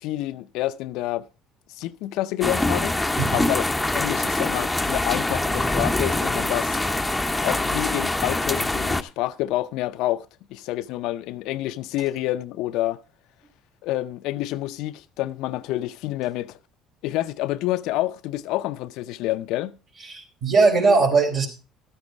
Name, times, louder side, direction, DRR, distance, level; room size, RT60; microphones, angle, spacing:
voice 1, 0.0-1.2 1.7-3.0 3.3-3.6 3.9-6.8 7.4-10.3 10.5-13.0 13.8-16.6 17.0-19.7, left 15 dB, 75° left, 0.6 m, -28 dB
sound 1, 2.4-9.0, left 2 dB, 10° left, 0.9 m, -24 dB
voice 2, 20.0-21.5, right 4 dB, 55° right, 4.1 m, -19 dB
13.0 x 8.9 x 4.6 m
supercardioid pair, 85°, 0 cm